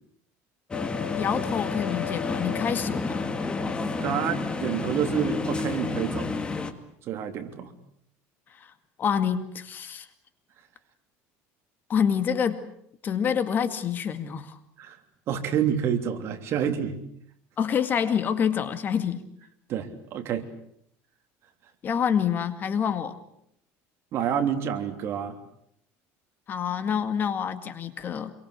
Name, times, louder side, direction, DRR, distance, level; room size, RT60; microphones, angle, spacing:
sound 1, 0.7-6.7, left 4 dB, 15° left, 2.1 m, -30 dB
voice 1, 1.2-3.2 8.6-8.7 9.0-10.1 11.9-12.6 13.0-14.6 17.6-19.2 21.8-23.2 26.5-28.3, left 7 dB, 35° left, 10 dB, 2.1 m, -27 dB
voice 2, 4.0-6.3 7.0-7.7 14.8-15.0 15.3-17.0 19.7-20.5 24.1-25.3, right 8 dB, 50° right, 6 dB, 3.2 m, -28 dB
26.5 x 23.5 x 8.3 m, 0.71 s
cardioid pair, 145°, 6 cm